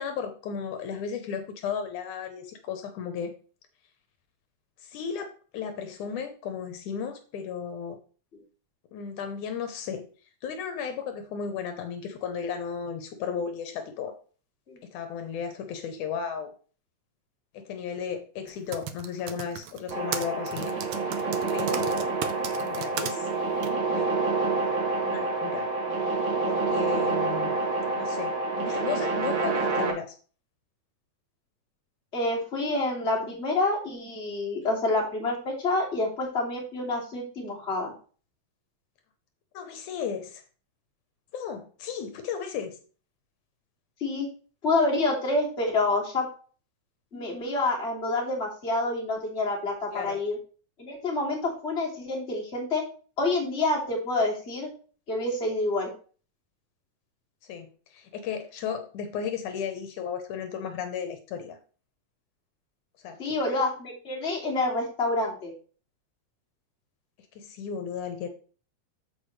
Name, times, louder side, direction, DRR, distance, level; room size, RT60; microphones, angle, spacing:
voice 1, 0.0-3.3 4.8-8.0 8.9-10.1 10.4-14.2 14.8-16.5 17.5-20.7 21.5-22.1 22.6-23.3 23.9-24.1 25.0-25.7 26.4-27.5 27.9-30.2 39.5-40.4 41.3-42.8 49.9-50.2 57.4-61.6 63.0-63.4 67.4-68.3, left 7 dB, 75° left, 7 dB, 2.4 m, -34 dB
Typing, 18.5-23.1 23.6-23.7, right 9 dB, 80° right, 1.3 m, -35 dB
sound 1, 19.9-29.9, right 3 dB, 65° right, 2.9 m, -28 dB
voice 2, 32.1-37.9 44.0-44.3 44.6-46.3 47.1-50.4 50.8-52.8 53.2-54.7 55.1-55.9 63.2-65.5, left 2 dB, 20° left, -3 dB, 2.7 m, -27 dB
14.0 x 5.0 x 3.2 m, 0.39 s
omnidirectional pair, 3.6 m